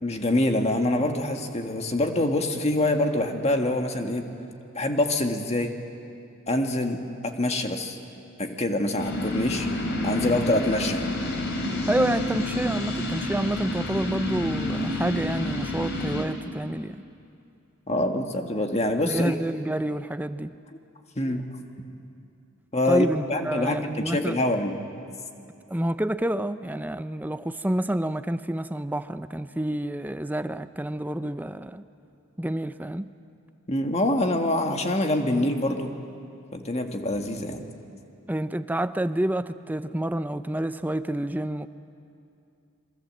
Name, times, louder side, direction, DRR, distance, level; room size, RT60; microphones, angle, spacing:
voice 1, 0.0-4.3 4.7-5.7 6.5-8.0 8.4-9.7 10.0-11.0 17.9-19.4 21.2-21.4 22.7-24.8 33.7-35.9 36.5-37.7, left 1 dB, 30° left, 4 dB, 1.7 m, -25 dB
sound 1, 9.0-16.3, left 1 dB, 55° left, 3.3 m, -29 dB
voice 2, 11.9-17.0 19.0-20.5 22.9-24.4 25.7-31.8 32.4-33.1 38.3-41.7, right 1 dB, 10° right, 12 dB, 0.5 m, -28 dB
27.0 x 23.0 x 7.7 m, 2.6 s
head